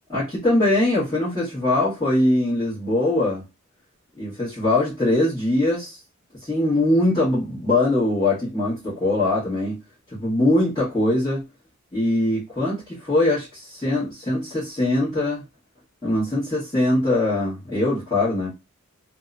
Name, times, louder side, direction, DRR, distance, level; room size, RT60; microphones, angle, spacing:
voice 1, 0.1-3.4 4.1-6.0 6.4-9.8 10.1-11.4 11.9-15.4 16.0-18.5, left 1 dB, 20° left, -10 dB, 1.1 m, -22 dB
2.8 x 2.0 x 2.4 m, 0.25 s
head